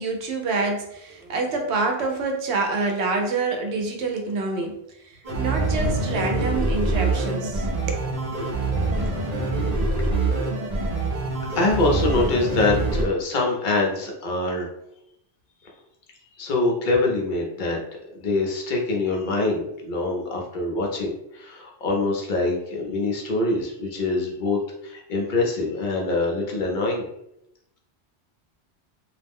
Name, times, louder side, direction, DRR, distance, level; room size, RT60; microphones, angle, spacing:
voice 1, 0.0-4.7 5.0-8.1, right 3 dB, 80° right, 3 dB, 0.8 m, -26 dB
sound 1, 5.2-13.0, right 2 dB, 45° right, 0.7 m, -25 dB
voice 2, 11.5-14.7 15.6-15.7 16.4-17.8 18.1-27.1, left 2 dB, 55° left, -1 dB, 0.7 m, -24 dB
2.4 x 2.0 x 3.4 m, 0.79 s
omnidirectional pair, 1.1 m